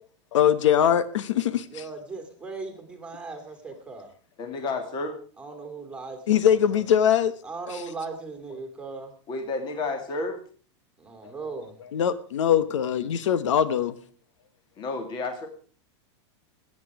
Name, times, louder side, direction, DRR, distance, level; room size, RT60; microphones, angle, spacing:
voice 1, 0.3-1.8 6.3-7.3 7.7-7.8 11.2-11.3 11.9-14.0, left 9 dB, 85° left, 15 dB, 1.1 m, -22 dB
voice 2, 1.7-4.1 5.4-6.4 6.7-6.8 7.4-9.1 11.0-11.8, right 4 dB, 5° right, 5 dB, 2.4 m, -38 dB
voice 3, 4.4-5.1 9.3-10.4 14.8-15.5, left 3 dB, 30° left, 7 dB, 2.3 m, -31 dB
21.0 x 8.8 x 4.8 m, 0.41 s
supercardioid pair, 150°, 15 cm